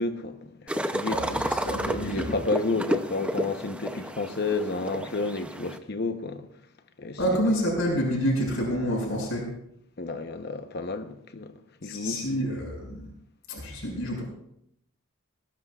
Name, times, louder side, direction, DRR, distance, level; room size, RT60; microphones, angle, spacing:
voice 1, 0.0-1.5 2.0-6.5 7.0-7.6 10.0-11.5 11.8-12.3, left 3 dB, 45° left, 0.9 m, -31 dB
sound 1, 0.7-5.8, right 1 dB, 5° right, 0.6 m, -31 dB
voice 2, 1.6-2.3 7.2-9.5 11.8-13.1 13.5-14.2, equal, 65° left, 6.4 m, -28 dB
20.5 x 18.5 x 2.4 m
head